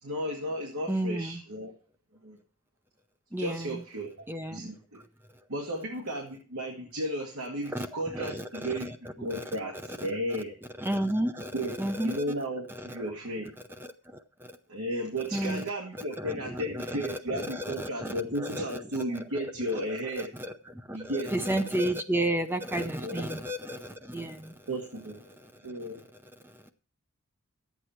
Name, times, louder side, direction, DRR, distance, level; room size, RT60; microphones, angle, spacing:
voice 1, 0.0-1.7 2.2-2.4 3.4-5.0 5.5-8.9 9.2-10.5 11.5-11.7 12.0-13.5 14.7-20.3 20.9-21.3 23.0-23.2 24.7-25.3 25.6-26.1, equal, 85° right, 2.0 m, -34 dB
voice 2, 0.9-1.4 3.3-3.8 4.3-4.6 7.7-9.0 9.3-9.4 9.9-10.1 10.8-12.2 12.7-13.1 14.1-14.5 15.3-15.6 16.2-18.8 19.3-19.4 20.2-24.5 25.4-25.5 26.4-26.7, right 1 dB, 10° right, 0.6 m, -32 dB
11.5 x 8.3 x 4.4 m
head